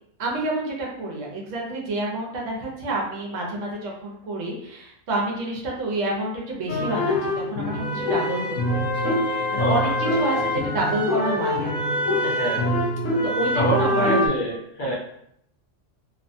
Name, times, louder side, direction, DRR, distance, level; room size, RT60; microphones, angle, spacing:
voice 1, 0.2-11.9 13.2-14.2 14.8-15.0, right 1 dB, 75° right, -3 dB, 1.1 m, -29 dB
sound 1, 6.7-14.3, left 1 dB, 80° left, 1.0 m, -24 dB
sound 2, 8.7-14.1, right 4 dB, 40° right, 0.7 m, -40 dB
voice 2, 12.2-12.7 13.6-14.9, right 1 dB, 45° left, -5 dB, 0.9 m, -26 dB
2.9 x 2.1 x 2.6 m, 0.72 s
omnidirectional pair, 1.3 m